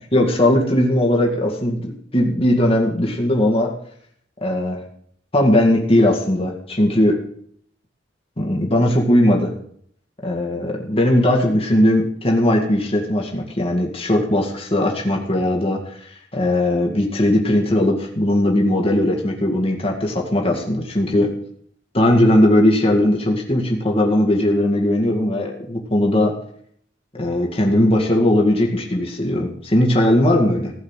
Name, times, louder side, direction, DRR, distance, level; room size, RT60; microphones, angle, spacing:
voice 1, 0.1-3.7 4.4-4.8 5.3-7.2 8.4-9.5 10.2-16.0 16.3-21.3 21.9-26.3 27.1-30.7, left 1 dB, 30° left, 0 dB, 2.0 m, -18 dB
16.0 x 5.4 x 7.4 m, 0.64 s
head